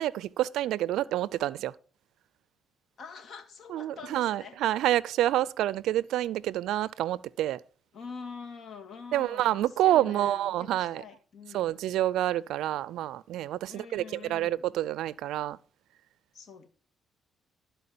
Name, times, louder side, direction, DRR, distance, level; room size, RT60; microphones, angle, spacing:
voice 1, 0.0-1.7 3.7-7.6 9.1-11.0 11.5-15.6, right 13 dB, 85° right, 0.4 m, -28 dB
voice 2, 3.0-4.6 7.9-11.7 13.7-14.7 16.3-16.7, left 5 dB, 60° left, 1.9 m, -45 dB
12.5 x 4.5 x 6.7 m
cardioid pair, 90°, 0 cm